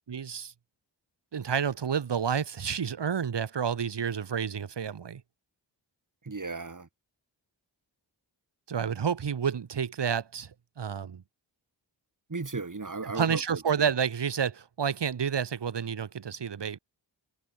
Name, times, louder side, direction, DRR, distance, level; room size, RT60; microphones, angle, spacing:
voice 1, 0.1-0.5 1.3-5.2 8.7-11.2 13.1-16.8, right 7 dB, 65° right, 1.3 m, -30 dB
voice 2, 6.2-6.9 12.3-13.9, right 3 dB, 45° right, 3.7 m, -36 dB
cardioid pair, 55°, 45 cm